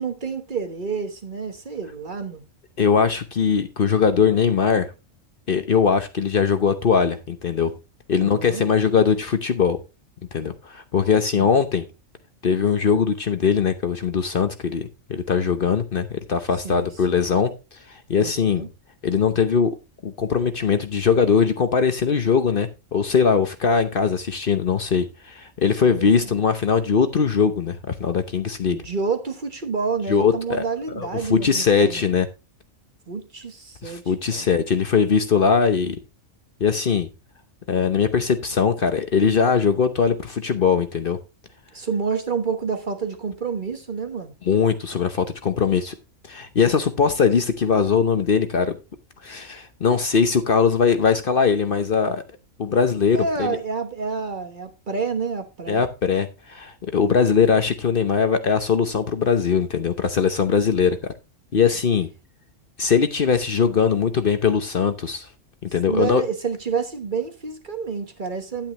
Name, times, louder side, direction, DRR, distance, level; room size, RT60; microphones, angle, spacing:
voice 1, 0.0-2.5 8.2-8.6 11.3-11.5 16.6-17.4 18.2-18.7 25.8-26.4 28.7-32.0 33.1-34.5 41.7-44.3 53.1-55.8 65.9-68.7, right 5 dB, 40° right, 1.3 m, -29 dB
voice 2, 2.8-4.9 5.5-7.7 8.1-9.8 10.3-11.8 12.4-17.5 17.9-18.7 19.0-19.7 20.0-28.8 30.1-30.6 31.0-32.3 33.8-36.0 36.6-37.1 37.7-41.2 44.4-45.9 46.3-48.7 49.2-52.2 52.6-53.6 55.7-61.0 61.5-62.1 62.8-65.3 65.7-66.2, left 6 dB, 50° left, 0.9 m, -21 dB
10.0 x 9.0 x 2.9 m
omnidirectional pair, 1.3 m